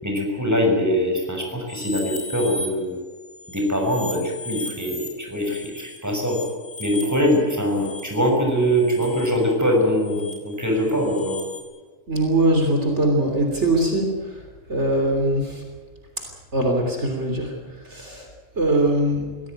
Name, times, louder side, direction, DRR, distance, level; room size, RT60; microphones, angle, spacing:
voice 1, 0.0-3.0 3.5-6.4 6.8-11.4, equal, 10° right, 1 dB, 6.0 m, -22 dB
sound 1, 1.7-2.7 3.1-11.6, left 2 dB, 70° left, 5.3 m, -38 dB
voice 2, 12.1-14.4 14.7-15.6 16.5-18.3 18.6-19.3, right 1 dB, 55° right, 2 dB, 3.6 m, -22 dB
24.0 x 17.0 x 9.0 m, 1.4 s
omnidirectional pair, 1.4 m